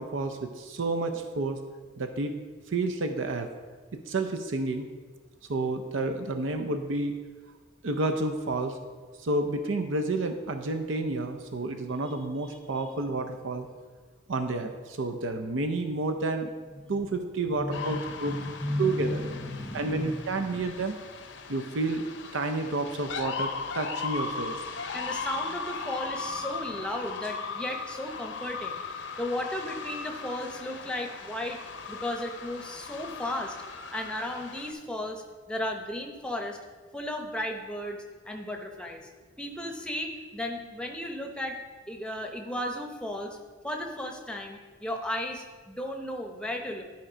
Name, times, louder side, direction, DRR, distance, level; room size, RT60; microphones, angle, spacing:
voice 1, 0.0-1.6 2.0-2.3 2.7-3.5 3.9-4.9 5.5-7.1 7.8-8.8 9.2-13.7 14.3-16.5 16.9-18.3 18.8-19.2 19.7-21.0 21.5-22.0 22.3-24.6, right 2 dB, 75° right, 6 dB, 0.6 m, -30 dB
voice 2, 12.4-12.8 16.7-17.0 17.4-20.6 24.9-31.6 31.9-33.5 33.9-36.6 36.9-39.1 39.4-41.6 41.9-43.4 43.6-46.8, left 1 dB, 5° left, 2 dB, 0.7 m, -35 dB
sound 1, 17.7-34.7, left 4 dB, 65° left, 0.7 m, -38 dB
11.5 x 4.4 x 5.0 m, 1.4 s
head